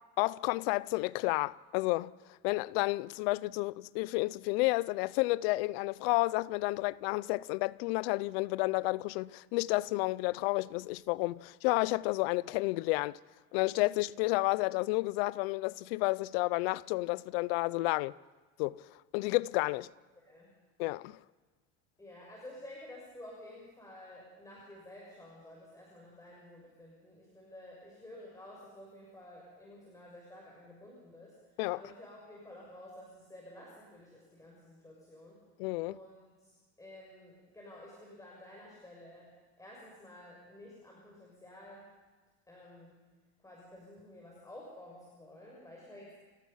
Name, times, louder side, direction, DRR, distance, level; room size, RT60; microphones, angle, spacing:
voice 1, 0.2-2.1 2.4-13.2 13.5-18.1 18.6-18.8 19.1-19.9 20.8-21.2 31.6-31.8 35.6-36.0, left 22 dB, 80° left, 0.6 m, -31 dB
voice 2, 20.1-20.5 22.0-35.4 35.9-39.3 39.6-41.8 42.5-43.0 43.4-46.1, left 1 dB, 10° left, 6.5 m, -52 dB
28.5 x 17.5 x 5.7 m
supercardioid pair, 110°, 30 cm